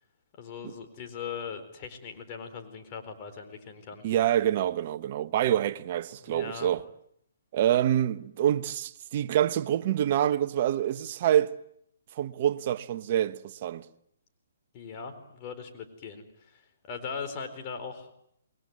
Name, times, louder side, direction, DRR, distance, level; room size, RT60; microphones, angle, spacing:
voice 1, 0.4-4.0 6.2-6.7 14.7-18.1, left 6 dB, 35° left, 4.3 m, -40 dB
voice 2, 4.0-6.8 7.5-11.5 12.1-13.8, right 11 dB, 45° right, 1.3 m, -26 dB
28.0 x 21.5 x 9.6 m
figure-of-eight pair, 135°, 0 cm